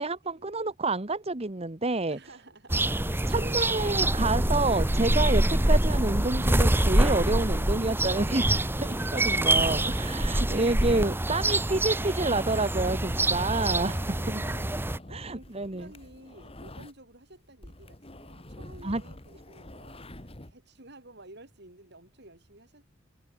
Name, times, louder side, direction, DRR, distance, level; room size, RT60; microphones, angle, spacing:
voice 1, 0.0-2.2 3.3-13.9 14.3-14.4 15.1-15.9 18.8-19.0, right 2 dB, 30° right, 1.4 m, -29 dB
voice 2, 2.1-2.9 13.6-14.7 15.1-22.9, right 2 dB, 60° right, 7.7 m, -52 dB
sound 1, 2.7-15.0, right 1 dB, 10° right, 1.0 m, -25 dB
sound 2, 9.3-17.2 17.5-20.5, left 1 dB, 30° left, 2.8 m, -47 dB
head